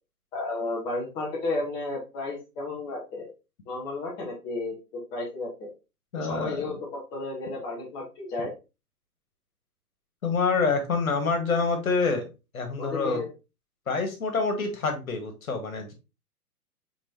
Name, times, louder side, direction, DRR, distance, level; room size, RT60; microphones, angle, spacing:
voice 1, 0.3-3.3 3.7-5.7 6.1-8.5 12.8-13.3, left 2 dB, 10° left, -4 dB, 0.6 m, -33 dB
voice 2, 6.1-6.8 10.2-12.3 12.5-13.2 13.9-15.9, left 4 dB, 65° left, 5 dB, 1.4 m, -27 dB
4.8 x 3.6 x 2.7 m, 0.28 s
figure-of-eight pair, 120°, 46 cm